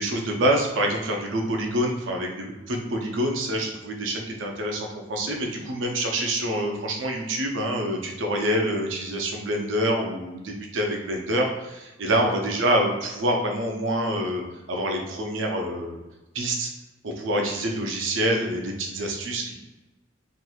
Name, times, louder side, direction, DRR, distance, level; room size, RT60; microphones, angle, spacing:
voice 1, 0.0-14.4 14.7-16.0 16.3-16.7 17.0-19.5, right 1 dB, 90° right, 1 dB, 0.6 m, -26 dB
2.9 x 2.5 x 2.3 m, 1.0 s
head